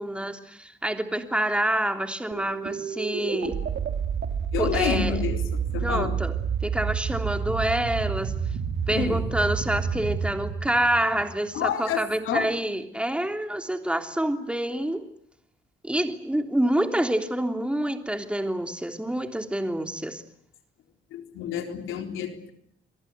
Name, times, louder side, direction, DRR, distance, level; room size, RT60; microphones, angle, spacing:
voice 1, 0.0-3.6 4.6-5.2 5.8-6.3 6.6-8.3 8.9-15.1 15.8-20.2, right 1 dB, 5° right, 3.2 m, -27 dB
sound 1, 2.3-11.6, right 6 dB, 65° right, 4.8 m, -29 dB
voice 2, 4.5-6.2 8.9-9.2 11.5-12.5 21.1-22.5, left 9 dB, 90° left, 4.1 m, -29 dB
29.5 x 22.5 x 8.3 m
cardioid pair, 90°, 20 cm